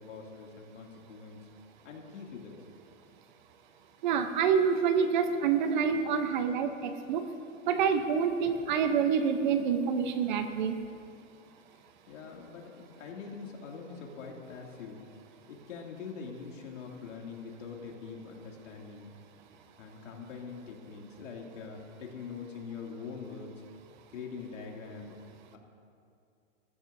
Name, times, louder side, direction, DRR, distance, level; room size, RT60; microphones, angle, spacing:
voice 1, 0.0-1.4 1.8-2.6 5.4-5.5 12.1-15.0 15.5-19.2 19.8-23.6 24.1-25.2 25.5-25.6, left 5 dB, 70° left, 0 dB, 2.6 m, -43 dB
voice 2, 4.0-7.2 7.6-10.8, right 6 dB, 40° right, 8 dB, 0.8 m, -27 dB
21.5 x 14.0 x 2.7 m, 2.5 s
hypercardioid pair, 155°, 38 cm